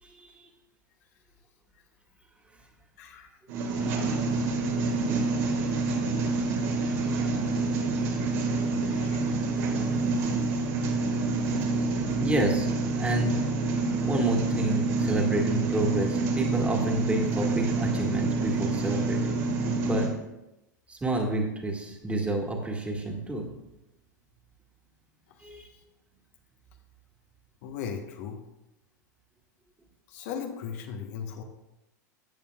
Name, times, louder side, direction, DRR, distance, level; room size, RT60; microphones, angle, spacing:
voice 1, 0.0-0.5 6.4-6.5 12.2-12.7 13.0-13.4 14.0-19.4 19.8-20.1 20.9-23.5 25.4-25.7, right 2 dB, 15° right, 1 dB, 1.8 m, -29 dB
voice 2, 3.0-3.3 8.8-9.2 27.6-28.4 30.1-31.4, left 7 dB, 55° left, 4 dB, 1.1 m, -37 dB
sound 1, 3.5-20.1, right 3 dB, 55° right, 2.0 m, -27 dB
14.0 x 8.7 x 2.4 m, 0.94 s
hypercardioid pair, 90°, 10 cm